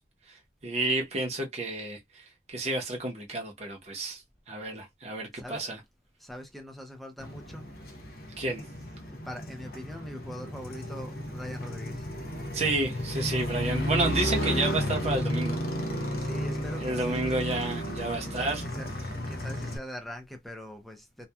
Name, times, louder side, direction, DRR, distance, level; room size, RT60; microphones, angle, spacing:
voice 1, 0.3-5.8 8.4-8.6 12.5-15.6 16.8-18.6, right 2 dB, 40° right, 0.8 m, -31 dB
voice 2, 5.3-5.7 6.2-7.7 9.1-12.1 16.2-17.5 18.2-18.9 19.3-21.3, equal, ahead, 0.6 m, -42 dB
Motorcycle, 7.2-19.8, equal, 55° left, 0.6 m, -33 dB
2.8 x 2.2 x 2.2 m
head